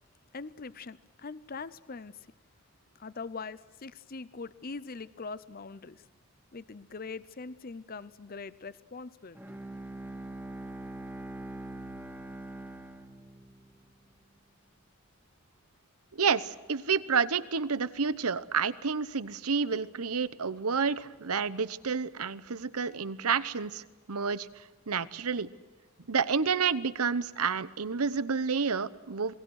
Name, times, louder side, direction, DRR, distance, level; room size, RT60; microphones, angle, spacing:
voice 1, 0.3-2.1 3.0-6.0 6.5-9.6, left 4 dB, 40° left, 16 dB, 0.6 m, -42 dB
Bowed string instrument, 9.4-13.8, right 2 dB, 10° right, 1.8 m, -42 dB
voice 2, 16.1-23.8 24.1-24.5 24.9-25.5 26.1-29.3, right 5 dB, 85° right, 15 dB, 1.0 m, -29 dB
27.5 x 20.5 x 6.4 m, 1.3 s
head